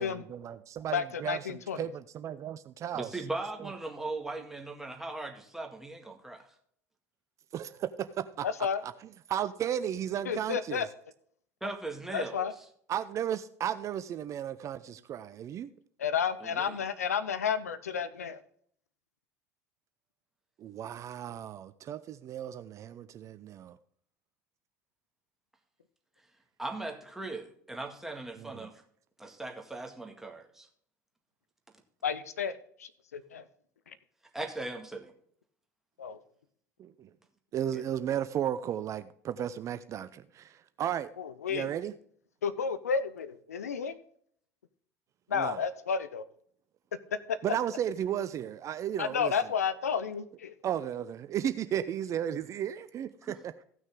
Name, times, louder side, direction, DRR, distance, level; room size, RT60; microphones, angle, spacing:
voice 1, 0.0-3.1 3.6-3.7 7.5-8.5 8.8-8.9 9.3-10.9 12.9-15.7 20.6-23.8 28.4-28.7 36.8-37.1 37.5-41.1 41.5-41.9 45.3-45.6 47.4-49.3 50.6-53.6, right 10 dB, 40° right, 0.5 m, -34 dB
voice 2, 0.9-1.9 8.4-8.8 10.2-10.9 12.1-12.5 16.0-18.4 32.0-32.5 32.8-33.4 33.9-34.0 36.0-36.2 41.2-41.7 42.4-44.0 45.3-46.2 47.3-47.4 49.0-50.5, left 6 dB, 80° left, 0.6 m, -31 dB
voice 3, 2.9-6.5 11.6-12.5 16.4-16.8 26.6-28.8 29.2-30.7 34.3-35.1 37.7-37.8 53.2-53.3, right 2 dB, 5° right, 1.9 m, -39 dB
15.5 x 6.2 x 3.7 m
figure-of-eight pair, 70°, 8 cm